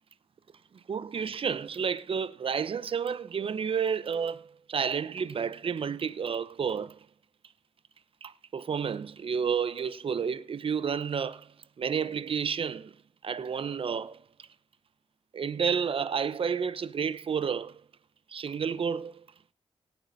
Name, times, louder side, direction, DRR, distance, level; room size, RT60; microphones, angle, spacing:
voice 1, 0.9-7.0 8.2-12.9 13.2-14.2 15.3-17.8 18.3-19.2, right 6 dB, 55° right, 0.9 m, -31 dB
17.5 x 9.1 x 4.2 m
cardioid pair, 95°, 11 cm